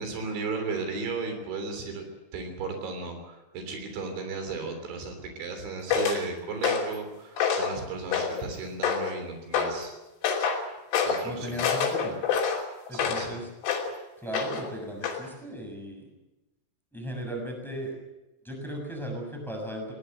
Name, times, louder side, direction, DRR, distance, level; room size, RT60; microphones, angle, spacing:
voice 1, 0.0-2.0 2.3-10.0 11.1-11.6 12.9-13.4, right 4 dB, 75° right, 6 dB, 5.6 m, -35 dB
sound 1, 5.9-6.2 6.6-7.0 7.4-7.8 8.1-8.5 8.8-9.2 9.5-9.8 10.2-10.6 10.9-11.2 11.6-13.3 13.6-13.9 14.3-14.7 15.0-15.2, left 6 dB, 85° left, 5.6 m, -27 dB
voice 2, 11.2-12.2 12.9-13.5 14.2-16.1 16.9-18.0 18.4-19.9, equal, ahead, 2 dB, 6.2 m, -36 dB
21.0 x 19.0 x 8.0 m, 1.0 s
omnidirectional pair, 5.4 m